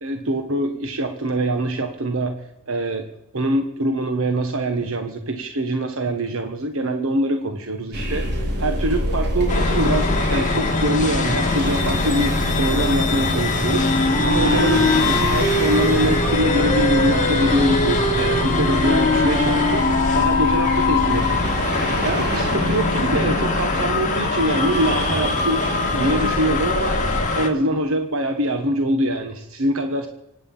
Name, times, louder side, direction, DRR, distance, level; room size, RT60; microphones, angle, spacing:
voice 1, 0.0-2.4 2.7-3.1 3.3-13.9 14.2-19.9 20.1-21.4 22.0-25.7 25.9-30.1, right 1 dB, 65° right, 6 dB, 1.4 m, -24 dB
sound 1, 7.9-27.3, equal, 50° right, 3.8 m, -26 dB
sound 2, 9.5-27.5, left 4 dB, 35° left, 2.1 m, -24 dB
Wind instrument woodwind instrument, 13.7-21.4, left 1 dB, 15° left, 3.1 m, -23 dB
25.5 x 9.4 x 5.6 m, 0.89 s
head